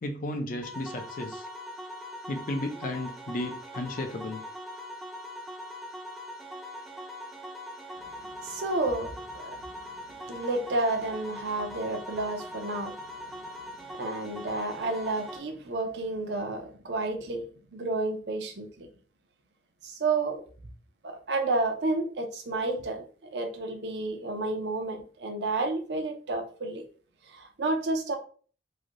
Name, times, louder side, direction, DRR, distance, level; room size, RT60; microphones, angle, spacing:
voice 1, 0.0-1.5 2.3-4.4, left 1 dB, 50° left, 0.4 m, -34 dB
sound 1, 0.6-15.4, equal, ahead, 0.5 m, -41 dB
voice 2, 8.0-13.0 13.3-18.9 19.8-20.4 21.0-23.0 23.3-26.8 27.3-28.2, right 2 dB, 65° right, 0.6 m, -31 dB
3.1 x 2.6 x 2.5 m
head